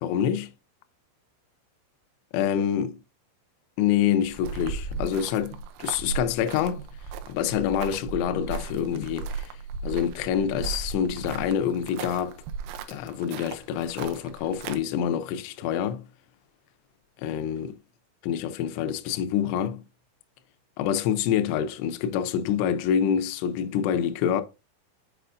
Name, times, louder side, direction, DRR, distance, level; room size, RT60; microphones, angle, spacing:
voice 1, 0.0-0.5 2.3-3.0 3.8-6.9 7.3-9.6 9.8-12.4 12.9-16.1 17.2-17.8 18.2-19.8 20.8-24.4, left 9 dB, 85° left, 2.5 m, -26 dB
sound 1, 4.3-14.8, right 5 dB, 90° right, 3.3 m, -36 dB
8.0 x 4.9 x 2.5 m
omnidirectional pair, 5.6 m